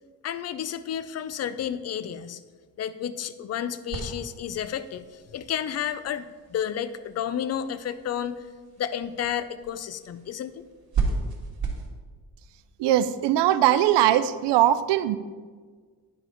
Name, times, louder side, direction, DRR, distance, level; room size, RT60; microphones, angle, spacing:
voice 1, 0.2-2.4 2.8-8.4 8.8-10.6, left 9 dB, 40° left, 14 dB, 0.5 m, -31 dB
sound 1, 3.9-11.9, right 4 dB, 45° right, 2.2 m, -35 dB
voice 2, 12.8-15.2, right 12 dB, 85° right, 14 dB, 0.6 m, -21 dB
10.5 x 5.0 x 5.0 m, 1.5 s
cardioid pair, 100°, 41 cm